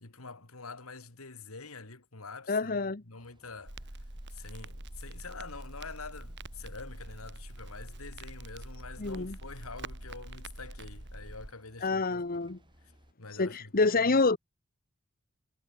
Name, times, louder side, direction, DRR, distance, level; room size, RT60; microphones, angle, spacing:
voice 1, 0.0-3.9 4.3-12.2 13.2-14.2, left 4 dB, 80° left, 2.5 m, -46 dB
voice 2, 2.5-3.0 9.0-9.4 11.8-12.6 13.4-14.4, left 3 dB, 45° left, 1.1 m, -27 dB
sound 1, 3.2-13.1, right 1 dB, 20° right, 6.1 m, -63 dB
Crackle, 3.7-11.5, right 1 dB, 55° right, 3.4 m, -45 dB
head